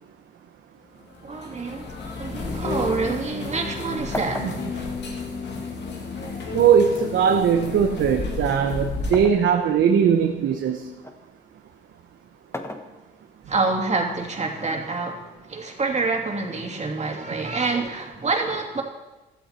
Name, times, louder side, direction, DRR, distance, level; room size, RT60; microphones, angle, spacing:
sound 1, 1.0-9.3, left 3 dB, 60° left, 2.4 m, -32 dB
voice 1, 1.2-5.0 13.5-18.8, right 3 dB, 35° right, 1 dB, 2.7 m, -27 dB
sound 2, 4.1-6.1 7.0-9.5 10.0-11.3 12.3-13.5 14.6-15.6, left 1 dB, 10° left, 1.2 m, -38 dB
voice 2, 6.5-10.8, right 7 dB, 70° right, 4 dB, 1.1 m, -19 dB
15.5 x 12.5 x 4.4 m, 1.1 s
cardioid pair, 90°, 20 cm